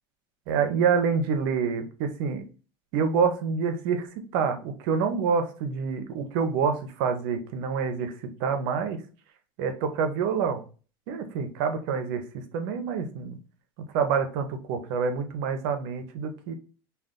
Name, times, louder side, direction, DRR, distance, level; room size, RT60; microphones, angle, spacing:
voice 1, 0.5-2.5 2.9-8.1 8.4-9.0 9.6-10.6 11.1-13.4 13.9-16.5, right 6 dB, 75° right, 7 dB, 0.6 m, -27 dB
2.4 x 2.3 x 3.5 m, 0.36 s
supercardioid pair, 115°, 12 cm